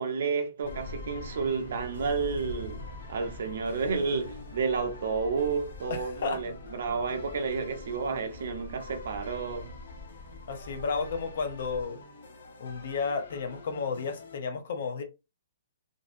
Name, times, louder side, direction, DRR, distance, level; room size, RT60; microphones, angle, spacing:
voice 1, 0.0-2.8 3.1-9.7, right 5 dB, 55° right, 0.6 m, -31 dB
sound 1, 0.6-11.8, left 2 dB, 5° right, 0.8 m, -45 dB
sound 2, 0.7-14.4, left 3 dB, 75° left, 0.9 m, -49 dB
voice 2, 5.9-6.4 10.5-12.0 12.6-15.0, left 5 dB, 50° left, 0.5 m, -32 dB
2.5 x 2.2 x 2.5 m
hypercardioid pair, 175°, 0 cm